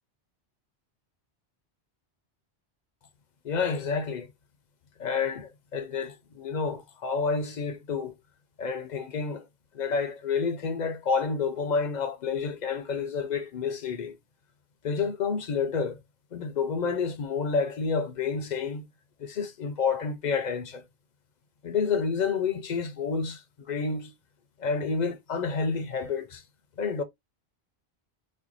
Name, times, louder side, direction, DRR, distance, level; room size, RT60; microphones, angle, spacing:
voice 1, 3.4-4.3 5.0-8.1 8.6-9.4 9.7-14.1 14.8-16.0 16.3-18.8 19.2-20.8 21.6-23.4 23.7-24.1 24.6-26.4 26.8-27.0, left 5 dB, 50° left, 0.6 m, -29 dB
4.3 x 2.2 x 2.5 m
omnidirectional pair, 1.1 m